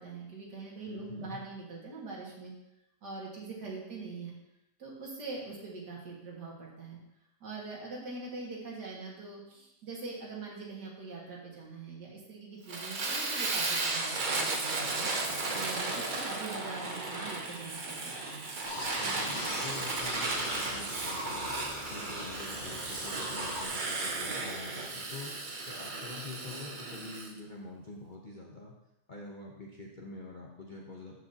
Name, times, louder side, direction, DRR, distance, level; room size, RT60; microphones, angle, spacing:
voice 1, 0.0-2.5 3.0-4.3 4.8-7.0 7.4-15.1 15.5-18.5, right 3 dB, 70° right, -3 dB, 2.5 m, -43 dB
voice 2, 0.9-1.4 15.1-15.7 19.0-21.5 21.9-25.3 25.7-28.8 29.1-31.2, left 3 dB, 35° left, -3 dB, 0.9 m, -46 dB
Fire, 12.7-27.3, right 3 dB, 50° right, 0.6 m, -35 dB
sound 1, 18.6-23.7, left 1 dB, 65° left, 2.2 m, -41 dB
13.5 x 5.3 x 2.9 m, 0.86 s
omnidirectional pair, 1.9 m